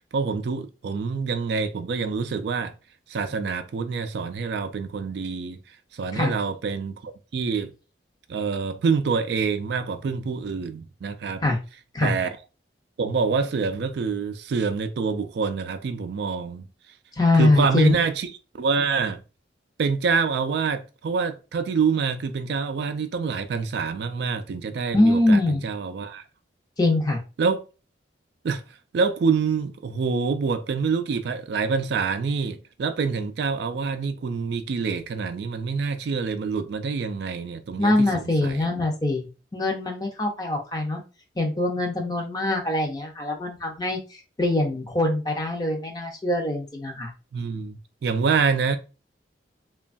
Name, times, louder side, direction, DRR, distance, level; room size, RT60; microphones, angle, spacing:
voice 1, 0.1-2.7 3.1-7.7 8.3-11.4 12.0-12.3 13.0-16.7 17.3-18.3 18.6-19.2 19.8-26.2 27.4-27.6 28.4-38.7 47.3-48.8, right 5 dB, 65° right, 0.3 m, -26 dB
voice 2, 17.2-17.9 24.9-25.6 26.8-27.2 37.8-39.3 39.5-41.0 41.4-47.1, left 2 dB, 20° left, 0.6 m, -23 dB
3.0 x 2.2 x 2.5 m
head